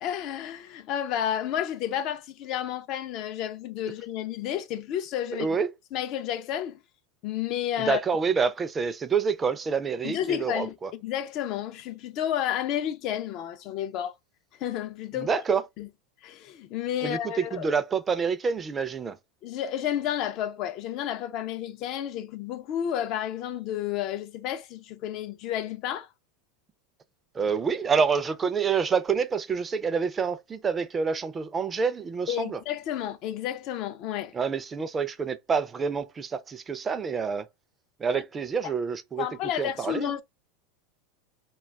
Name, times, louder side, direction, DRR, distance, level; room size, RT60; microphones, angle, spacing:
voice 1, 0.0-5.6 5.9-6.8 7.2-8.0 10.0-14.2 14.6-15.3 15.8-15.9 16.2-17.8 19.4-26.1 32.3-34.3 38.1-38.2 38.6-38.7 39.2-40.2, left 10 dB, 55° left, 0.4 m, -31 dB
voice 2, 5.4-5.7 7.8-10.9 15.2-15.6 17.0-19.2 27.3-32.6 34.3-37.5 38.0-39.3 39.6-40.1, right 5 dB, 25° right, 0.4 m, -27 dB
2.3 x 2.3 x 3.1 m
hypercardioid pair, 105°, 0 cm